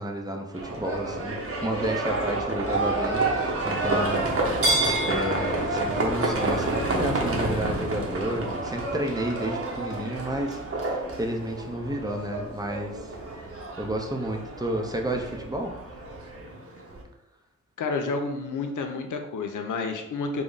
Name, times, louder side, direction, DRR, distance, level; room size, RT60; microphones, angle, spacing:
voice 1, 0.0-4.3 5.0-13.1 13.8-15.7, right 1 dB, 15° right, 2 dB, 0.5 m, -31 dB
Livestock farm animals working animals, 0.5-17.0, right 2 dB, 50° right, 0.8 m, -29 dB
voice 2, 17.8-20.4, left 4 dB, 90° left, 5 dB, 0.5 m, -30 dB
3.5 x 2.0 x 3.8 m, 0.85 s
cardioid pair, 70°, 30 cm